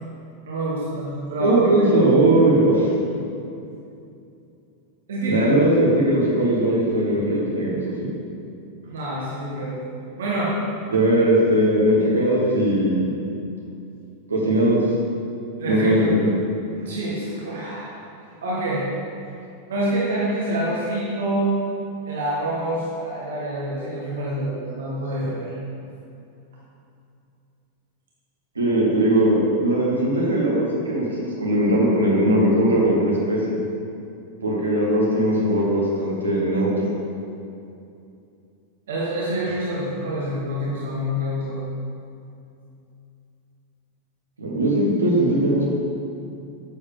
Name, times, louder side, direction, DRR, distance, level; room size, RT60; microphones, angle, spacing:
voice 1, 0.4-1.6 5.1-5.4 8.9-9.8 10.2-10.6 15.6-16.1 16.8-18.0 18.4-18.9 19.7-21.5 22.1-25.5 38.9-41.6, right 1 dB, 60° right, -5 dB, 1.4 m, -26 dB
voice 2, 1.4-2.9 5.3-8.1 10.9-13.1 14.3-14.8 15.6-16.3 28.6-33.6 34.4-36.9 44.4-45.7, right 1 dB, 75° right, -4 dB, 1.6 m, -19 dB
9.1 x 7.0 x 3.6 m, 2.6 s
figure-of-eight pair, 90°, 0 cm